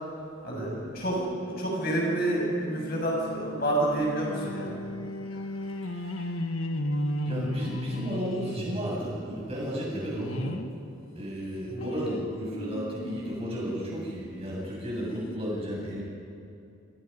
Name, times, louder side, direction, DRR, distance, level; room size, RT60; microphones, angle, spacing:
voice 1, 0.4-4.8 11.7-11.9, right 1 dB, 45° left, -2 dB, 7.1 m, -29 dB
sound 1, 1.1-10.7 11.2-14.3 14.8-14.9 15.1-15.2, left 1 dB, 85° left, 1.6 m, -36 dB
voice 2, 5.8-6.2 7.2-10.6 11.1-16.0, equal, 30° right, -4 dB, 7.7 m, -34 dB
29.5 x 27.0 x 5.6 m, 2.5 s
head